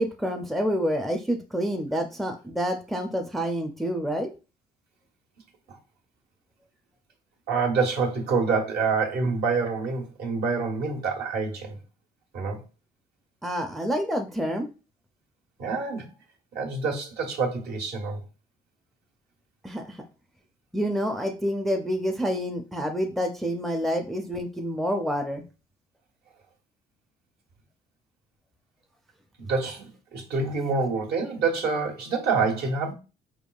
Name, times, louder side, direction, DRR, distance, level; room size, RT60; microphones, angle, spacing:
voice 1, 0.0-4.3 13.4-14.7 19.6-20.0 20.7-25.4, equal, ahead, 0.5 m, -28 dB
voice 2, 7.5-11.8 12.3-12.6 15.6-16.1 16.5-18.2 29.4-32.9, right 4 dB, 70° right, 1.4 m, -27 dB
4.8 x 3.5 x 2.4 m
cardioid pair, 110°, 17 cm